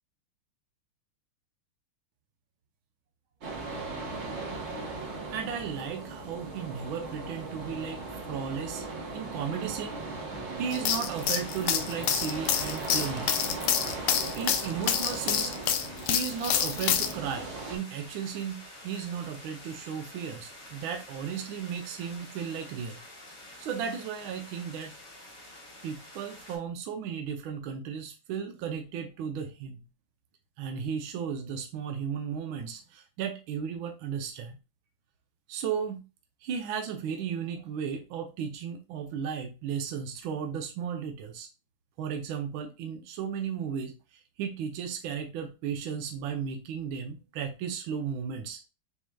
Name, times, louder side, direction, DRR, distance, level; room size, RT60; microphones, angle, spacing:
sound 1, 3.4-17.8, right 3 dB, 45° right, 0.9 m, -38 dB
voice 1, 5.3-8.9 9.1-10.0 10.5-13.3 14.4-15.5 16.0-23.0 23.6-24.9 25.8-29.8 30.6-34.6 35.5-36.0 36.4-41.5 42.0-48.6, right 7 dB, 75° right, 4 dB, 1.4 m, -35 dB
sound 2, 10.7-17.1, left 9 dB, 90° left, 0.9 m, -27 dB
sound 3, 11.1-26.6, left 1 dB, 55° left, 2.9 m, -48 dB
6.2 x 2.8 x 2.3 m, 0.29 s
omnidirectional pair, 2.4 m